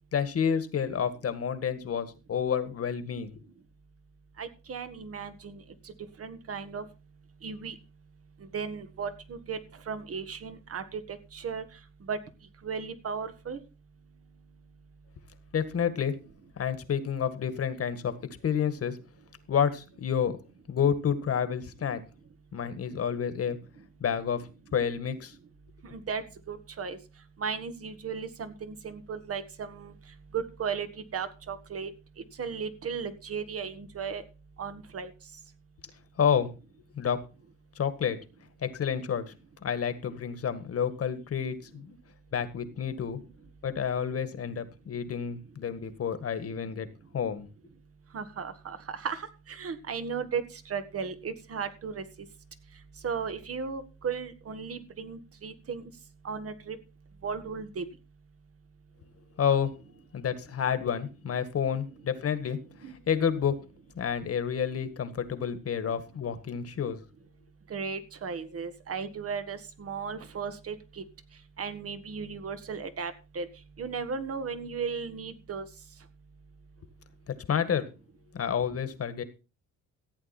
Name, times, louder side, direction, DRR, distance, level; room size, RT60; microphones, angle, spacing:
voice 1, 0.1-3.4 15.5-16.1 16.6-18.1 18.4-19.0 19.5-20.4 20.7-22.0 22.5-23.6 24.0-24.4 24.7-25.3 36.2-36.5 37.0-37.2 37.8-38.2 38.6-39.3 39.6-42.0 42.3-43.2 43.6-46.9 47.1-47.5 59.4-59.7 60.1-63.5 64.0-67.0 77.3-77.9 78.3-79.2, left 7 dB, 50° left, 11 dB, 1.8 m, -29 dB
voice 2, 4.4-5.6 6.2-6.8 7.4-7.8 8.5-9.6 9.9-11.6 12.1-12.2 12.6-13.6 25.9-27.0 27.4-29.9 30.3-30.9 31.1-31.9 32.4-34.2 34.6-35.1 48.1-49.2 49.5-50.4 50.7-52.0 53.0-55.8 56.2-56.8 57.2-57.8 62.8-63.0 67.7-71.0 71.6-73.5 73.8-75.7, right 6 dB, 50° right, 11 dB, 1.8 m, -35 dB
15.0 x 8.6 x 4.4 m, 0.32 s
cardioid pair, 90°, 30 cm